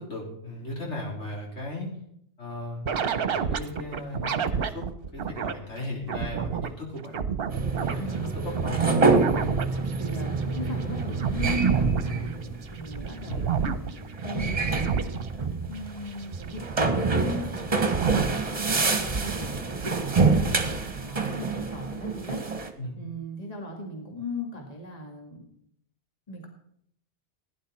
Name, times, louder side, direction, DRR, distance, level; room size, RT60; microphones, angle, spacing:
voice 1, 0.0-1.9 2.4-2.8 3.3-7.2 7.8-9.0 13.3-13.5 22.8-23.0, left 1 dB, 85° left, -2 dB, 4.2 m, -37 dB
sound 1, 2.9-5.5 5.8-6.7 7.0-8.7 9.0-18.7 19.0-19.9, right 6 dB, 60° right, 1.0 m, -30 dB
sound 2, 7.5-22.7, right 4 dB, 35° right, 1.3 m, -27 dB
voice 2, 8.0-8.3 10.0-25.6 26.3-26.5, left 2 dB, 35° left, 1 dB, 2.2 m, -39 dB
16.5 x 10.5 x 4.3 m, 0.70 s
omnidirectional pair, 1.1 m